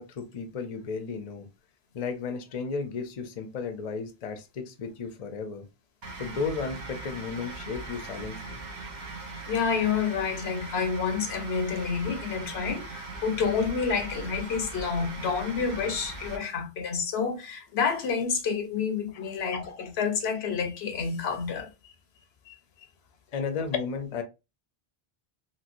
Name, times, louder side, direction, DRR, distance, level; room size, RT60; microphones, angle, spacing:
voice 1, 0.0-1.5 1.9-5.6 6.2-8.6 19.1-19.2 23.3-24.2, left 5 dB, 45° left, 0.6 m, -34 dB
sound 1, 6.0-16.4, right 3 dB, 50° right, 0.8 m, -40 dB
voice 2, 9.5-21.9 22.5-22.6, left 6 dB, 85° left, 0.9 m, -29 dB
3.0 x 2.9 x 2.5 m
omnidirectional pair, 1.1 m